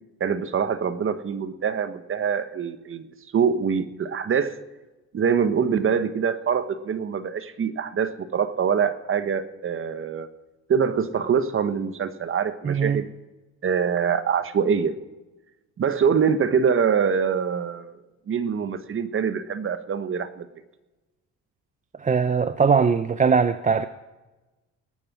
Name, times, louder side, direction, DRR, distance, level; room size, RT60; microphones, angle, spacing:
voice 1, 0.2-3.1 3.3-4.6 5.1-10.3 10.7-13.1 13.6-14.9 15.8-18.0 18.3-20.5, right 7 dB, 40° right, 1.3 m, -24 dB
voice 2, 12.6-13.0 22.0-23.9, right 5 dB, 25° right, 0.6 m, -21 dB
19.5 x 9.1 x 6.1 m
cardioid pair, 110°, 31 cm